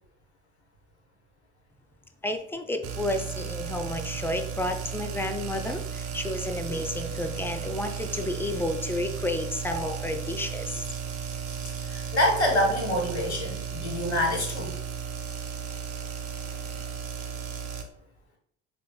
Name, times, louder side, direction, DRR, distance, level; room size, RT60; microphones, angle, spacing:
voice 1, 2.2-10.8, left 1 dB, 5° left, 6 dB, 0.3 m, -31 dB
sound 1, 2.8-17.8, right 7 dB, 55° right, 0.6 m, -35 dB
voice 2, 11.8-14.8, left 1 dB, 85° left, 1 dB, 0.7 m, -26 dB
4.4 x 3.4 x 2.2 m, 0.66 s
figure-of-eight pair, 50°, 32 cm